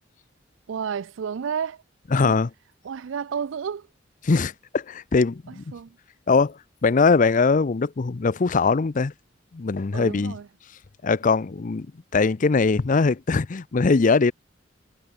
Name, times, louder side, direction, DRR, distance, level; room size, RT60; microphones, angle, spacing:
voice 1, 0.7-1.8 2.2-2.4 2.8-3.9 5.5-6.0 9.9-10.5, right 7 dB, 90° right, 0.4 m, -31 dB
voice 2, 2.1-2.5 4.3-5.6 6.3-9.1 9.5-10.3 11.0-11.9 12.1-14.3, left 4 dB, 45° left, 0.5 m, -21 dB
head